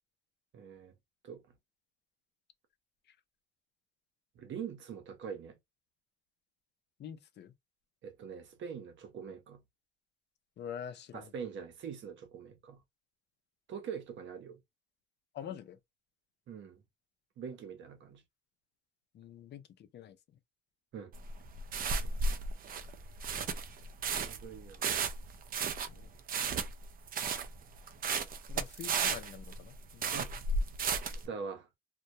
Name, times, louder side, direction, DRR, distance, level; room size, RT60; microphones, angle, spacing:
voice 1, 0.5-0.9 1.2-1.4 4.4-5.6 8.0-9.6 11.1-12.8 13.7-14.6 16.5-16.8 17.4-18.2 20.9-21.1 24.1-24.9 30.1-30.3 31.1-31.7, right 6 dB, 70° right, 0.7 m, -43 dB
voice 2, 7.0-7.5 10.6-11.3 15.3-15.8 19.1-20.2 25.9-26.1 28.5-30.2, left 9 dB, 60° left, 0.5 m, -45 dB
sound 1, 21.1-31.3, right 4 dB, 45° right, 0.4 m, -34 dB
2.2 x 2.1 x 2.6 m
cardioid pair, 90°, 20 cm